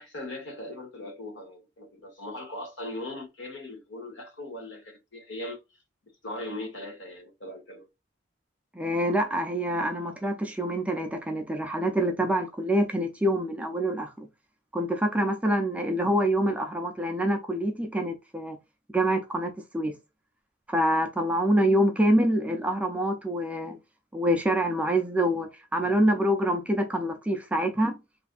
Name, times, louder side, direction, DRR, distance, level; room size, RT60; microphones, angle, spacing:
voice 1, 0.0-5.6 6.2-7.9, left 1 dB, 65° left, 1.0 m, -39 dB
voice 2, 8.7-14.3 14.7-18.6 18.9-19.9 20.7-23.8 24.1-28.0, right 1 dB, 5° right, 0.4 m, -26 dB
3.2 x 2.5 x 2.4 m
head